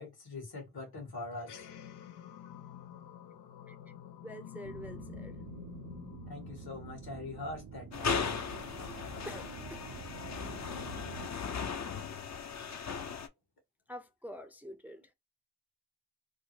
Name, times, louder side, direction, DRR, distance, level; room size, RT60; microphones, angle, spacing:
voice 1, 0.0-1.6 6.3-8.4, left 2 dB, 70° left, 2.0 m, -43 dB
sound 1, 1.3-8.0, left 10 dB, 85° left, 0.6 m, -49 dB
voice 2, 4.2-5.4 9.1-9.9 13.9-15.1, equal, 5° right, 0.5 m, -46 dB
sound 2, 4.6-11.3, right 7 dB, 50° right, 0.6 m, -48 dB
sound 3, 7.9-13.3, left 6 dB, 45° left, 0.7 m, -37 dB
3.5 x 2.1 x 3.1 m
cardioid pair, 55°, 39 cm